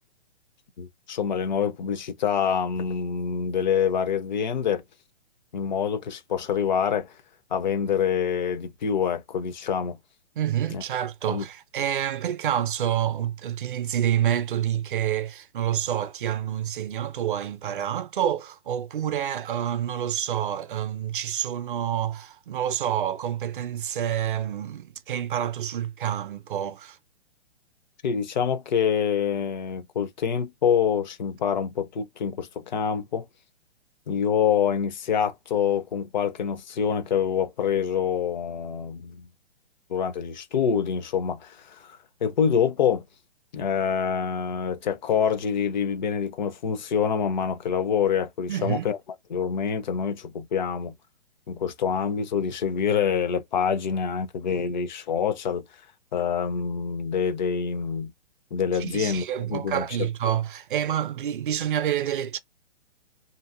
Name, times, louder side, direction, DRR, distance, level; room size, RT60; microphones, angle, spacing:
voice 1, 0.8-4.8 5.5-7.1 7.5-10.0 10.7-10.8 11.3-11.4 28.0-33.2 34.1-39.3 39.9-43.0 43.5-49.0 49.3-51.0 51.5-55.6 56.1-58.1 58.5-59.2 59.5-60.1, left 7 dB, 45° left, 0.5 m, -26 dB
voice 2, 10.4-27.0 48.5-48.9 58.8-62.4, right 10 dB, 50° right, 0.5 m, -28 dB
2.7 x 2.6 x 2.4 m
figure-of-eight pair, 130°, 34 cm